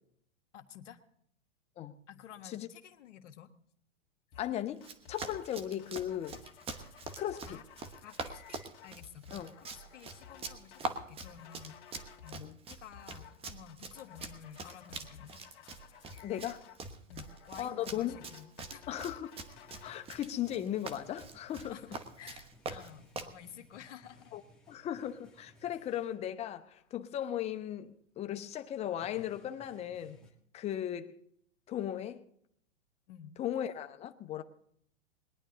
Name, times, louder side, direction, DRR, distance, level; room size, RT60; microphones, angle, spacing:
voice 1, 0.5-1.0 2.1-3.5 7.5-7.6 8.0-15.4 17.1-19.0 21.7-24.3 30.7-30.8 33.1-33.4, left 9 dB, 70° left, 1.5 m, -52 dB
sound 1, 4.3-4.5 4.8-5.5 5.8-12.4 12.7-13.4 13.7-20.1, left 8 dB, 50° left, 2.0 m, -55 dB
voice 2, 4.4-6.4 7.2-7.6 9.3-9.5 12.4-12.6 16.2-16.6 17.6-18.2 18.9-19.3 19.8-21.8 22.7-22.8 24.3-24.4 24.7-30.2 30.5-31.2 31.7-32.2 33.4-34.4, left 11 dB, 15° left, 0.7 m, -37 dB
Run, 4.8-23.4, right 4 dB, 15° right, 1.0 m, -44 dB
sound 2, 19.5-26.4 26.6-27.0 27.8-27.9 28.3-28.4 28.6-30.3, left 2 dB, ahead, 2.0 m, -62 dB
21.5 x 10.5 x 3.9 m
hypercardioid pair, 135°, 37 cm